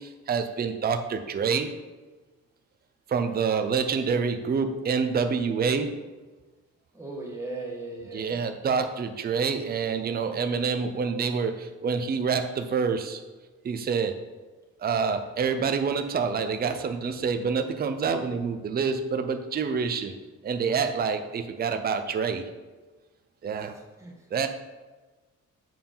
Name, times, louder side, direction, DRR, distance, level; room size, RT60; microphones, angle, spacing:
voice 1, 0.0-1.7 3.1-6.0 8.1-13.2 13.6-14.2 14.8-20.1 20.4-22.4 23.4-23.8 24.3-24.5, right 5 dB, 30° right, 7 dB, 0.6 m, -27 dB
voice 2, 6.9-8.4 23.6-24.3, right 2 dB, 10° right, -2 dB, 1.6 m, -38 dB
7.5 x 4.6 x 5.5 m, 1.3 s
cardioid pair, 150°, 31 cm